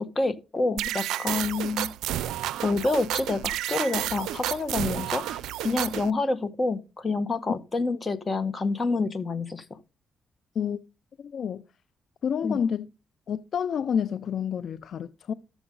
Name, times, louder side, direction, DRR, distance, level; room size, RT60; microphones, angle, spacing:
voice 1, 0.0-1.9 2.6-9.6 12.4-12.6, left 3 dB, 35° left, 1.5 m, -28 dB
sound 1, 0.8-6.1, right 13 dB, 80° right, 0.4 m, -31 dB
voice 2, 11.2-11.6 12.2-12.9 13.3-15.3, left 7 dB, 65° left, 0.5 m, -29 dB
13.0 x 7.1 x 3.8 m
supercardioid pair, 50°, 0 cm